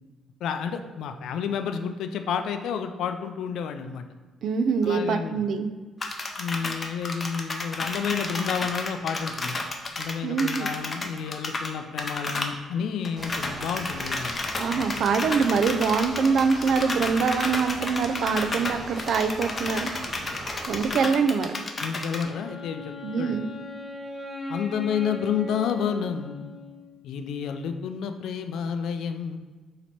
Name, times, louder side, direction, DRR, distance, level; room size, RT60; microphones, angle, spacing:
voice 1, 0.4-4.0 4.8-5.4 6.4-9.6 10.0-14.4 14.7-14.9 19.0-19.1 19.7-19.8 21.8-23.4 24.5-26.5 27.0-29.4, left 7 dB, 80° left, 7 dB, 0.4 m, -30 dB
voice 2, 4.4-5.7 10.2-10.7 14.6-19.9 20.7-21.5 23.0-23.5, right 5 dB, 70° right, 8 dB, 0.4 m, -24 dB
sound 1, 6.0-11.7 12.0-12.5 12.8-12.9 13.0-22.2, left 2 dB, 30° left, 0.6 m, -32 dB
sound 2, 13.2-21.0, right 1 dB, 45° right, 1.1 m, -40 dB
Wind instrument woodwind instrument, 22.2-27.0, left 1 dB, ahead, 0.9 m, -39 dB
4.2 x 2.9 x 4.4 m, 1.3 s
cardioid pair, 90°, 0 cm